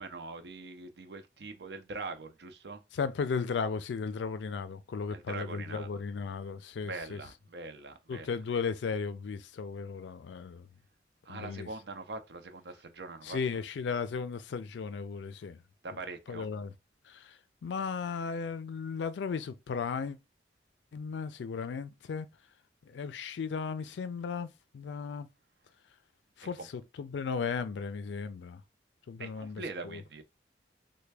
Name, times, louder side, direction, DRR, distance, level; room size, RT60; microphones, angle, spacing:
voice 1, 0.0-2.8 5.1-6.0 6.8-8.3 11.2-13.4 15.8-16.5 26.6-26.7 29.2-30.2, right 3 dB, 70° right, 0.5 m, -42 dB
voice 2, 2.9-7.2 8.1-10.7 11.3-11.7 13.2-15.6 16.3-16.7 17.1-20.2 20.9-22.3 22.8-25.3 26.4-26.6 27.0-28.6 29.1-30.0, left 5 dB, 85° left, 0.4 m, -35 dB
3.3 x 2.2 x 3.2 m
head